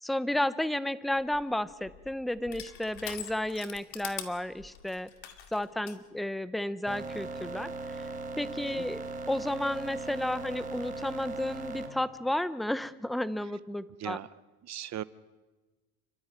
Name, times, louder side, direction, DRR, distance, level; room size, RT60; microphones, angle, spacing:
voice 1, 0.0-5.1 5.5-8.1 8.4-14.2, left 1 dB, ahead, 15 dB, 0.7 m, -32 dB
Crushing, 1.1-6.0, left 10 dB, 65° left, 2.4 m, -44 dB
sound 1, 6.9-11.9, right 3 dB, 20° right, 3.5 m, -38 dB
voice 2, 14.6-15.0, right 12 dB, 40° right, 16 dB, 0.8 m, -38 dB
29.5 x 13.0 x 9.6 m, 1.2 s
cardioid pair, 130°, 42 cm